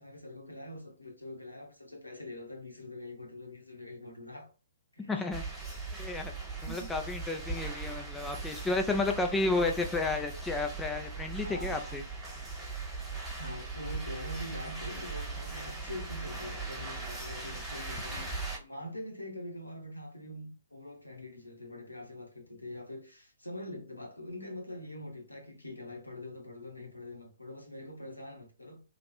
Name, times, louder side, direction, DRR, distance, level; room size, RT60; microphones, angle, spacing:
voice 1, 0.0-4.5 4.9-5.3 6.5-6.9 11.4-12.0 13.4-18.3 18.6-28.8, left 1 dB, 85° left, 1.0 m, -44 dB
voice 2, 5.1-5.4 6.0-6.3 6.6-12.0, left 3 dB, 5° left, 0.4 m, -32 dB
sound 1, 5.3-18.6, right 3 dB, 10° right, 1.2 m, -39 dB
3.0 x 2.4 x 2.8 m
figure-of-eight pair, 120°, 0 cm